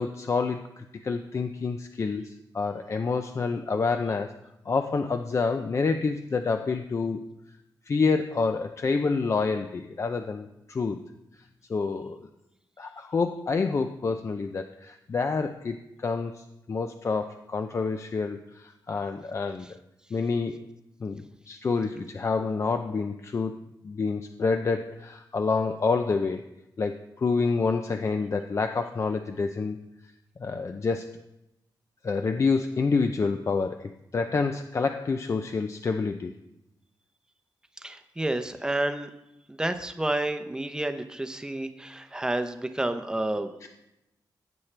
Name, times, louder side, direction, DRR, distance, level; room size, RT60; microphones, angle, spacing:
voice 1, 0.0-4.4 4.7-7.3 7.9-11.0 11.7-12.3 12.8-19.8 20.1-20.7 21.0-26.4 26.8-29.8 30.4-31.2 32.0-36.3, left 4 dB, 35° left, 7 dB, 0.5 m, -28 dB
voice 2, 37.8-39.1 39.5-43.7, right 1 dB, 10° right, 8 dB, 0.7 m, -30 dB
15.5 x 8.7 x 3.3 m, 0.89 s
wide cardioid pair, 140°, 8 cm